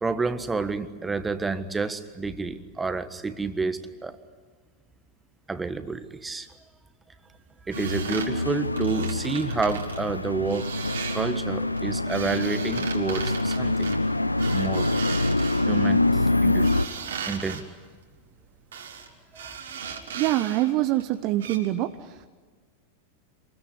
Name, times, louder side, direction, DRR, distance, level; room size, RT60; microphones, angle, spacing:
voice 1, 0.0-4.2 5.5-6.5 7.7-10.7 11.1-13.9 14.5-14.9 15.7-16.7 17.2-17.7 19.3-19.6 19.8-20.1, right 4 dB, 10° right, 11 dB, 1.6 m, -29 dB
sound 1, 7.7-16.9, left 2 dB, 85° left, 0.7 m, -25 dB
sound 2, 7.7-10.0 10.5-11.4 11.8-16.0 16.6-17.6 18.7-19.1 19.3-20.7 21.0-21.1 21.4-21.6, right 7 dB, 65° right, 3.2 m, -37 dB
voice 2, 20.1-22.1, right 15 dB, 40° right, 10 dB, 0.9 m, -25 dB
27.5 x 21.5 x 9.8 m, 1.4 s
figure-of-eight pair, 90°, 0 cm